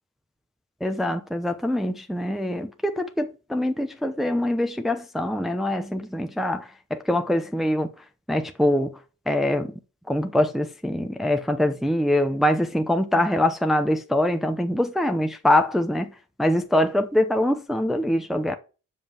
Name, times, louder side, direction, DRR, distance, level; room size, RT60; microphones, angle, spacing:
voice 1, 0.8-7.9 8.3-9.0 9.3-9.7 10.1-18.5, left 1 dB, ahead, 0.7 m, -24 dB
7.6 x 5.4 x 7.3 m
wide cardioid pair, 115°, 33 cm